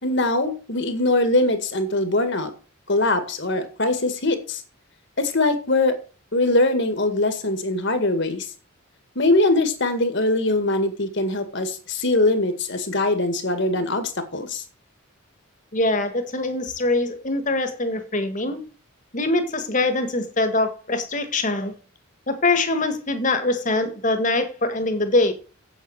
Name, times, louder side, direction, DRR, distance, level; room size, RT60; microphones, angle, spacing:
voice 1, 0.0-2.5 2.9-4.6 5.2-6.0 6.3-8.5 9.2-14.6, left 2 dB, 55° left, 8 dB, 2.0 m, -22 dB
voice 2, 15.7-18.6 19.1-21.7 22.3-25.3, left 2 dB, 35° left, 8 dB, 1.7 m, -23 dB
8.3 x 8.3 x 6.4 m, 0.36 s
head